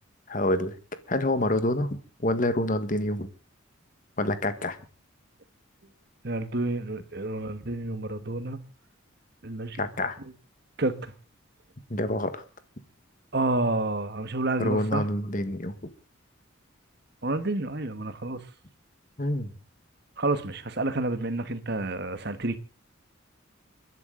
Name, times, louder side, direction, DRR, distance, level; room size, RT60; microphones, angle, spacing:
voice 1, 0.3-0.7 1.1-3.3 4.2-4.8 9.7-10.2 11.9-12.4 14.6-15.7 19.2-19.5, left 1 dB, 40° left, 1.5 m, -27 dB
voice 2, 6.2-8.6 9.4-9.9 10.8-11.1 13.3-15.1 17.2-18.4 20.2-22.6, right 2 dB, 50° right, 1.4 m, -29 dB
29.5 x 11.0 x 3.9 m
head